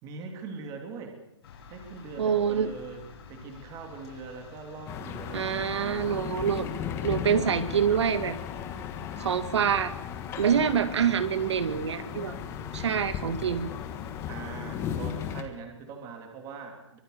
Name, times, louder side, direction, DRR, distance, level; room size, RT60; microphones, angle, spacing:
voice 1, 0.0-1.2 1.7-3.0 3.3-6.3 14.3-17.0, right 5 dB, 20° right, 4 dB, 3.2 m, -42 dB
sound 1, 1.4-15.4, left 6 dB, 55° left, 6.0 m, -49 dB
voice 2, 2.2-2.7 5.3-8.4 9.2-9.9 10.4-12.4 12.7-13.7, right 8 dB, 65° right, 11 dB, 2.1 m, -26 dB
sound 2, 4.9-15.4, left 8 dB, 15° left, 1.6 m, -36 dB
24.5 x 22.5 x 6.8 m, 0.85 s
hypercardioid pair, 160°, 15 cm